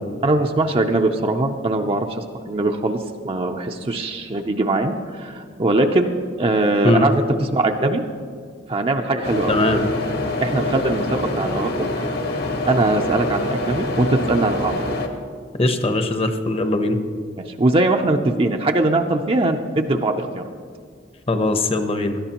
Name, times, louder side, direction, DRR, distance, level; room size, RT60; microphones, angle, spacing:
voice 1, 0.2-2.1 2.5-6.1 6.4-8.0 8.7-9.5 10.4-11.9 12.7-14.8 17.4-20.4, right 2 dB, 30° right, 3 dB, 0.5 m, -21 dB
sound 1, 9.2-15.1, left 1 dB, 60° left, 1.3 m, -25 dB
voice 2, 9.5-9.8 15.6-17.0 21.3-22.2, left 2 dB, 35° left, 7 dB, 0.9 m, -20 dB
18.0 x 12.5 x 3.0 m, 2.1 s
head